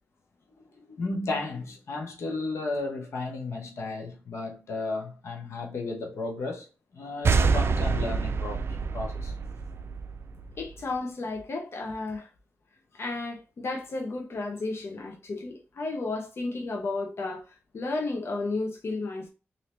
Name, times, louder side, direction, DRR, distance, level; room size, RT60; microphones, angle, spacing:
voice 1, 0.6-8.6 8.9-9.3, left 3 dB, 85° left, 1.0 m, -34 dB
sound 1, 7.2-10.7, right 5 dB, 65° right, 0.3 m, -26 dB
voice 2, 10.6-12.3 12.9-19.3, left 3 dB, 65° left, 0.7 m, -33 dB
3.2 x 2.7 x 3.0 m
cardioid pair, 60°, 5 cm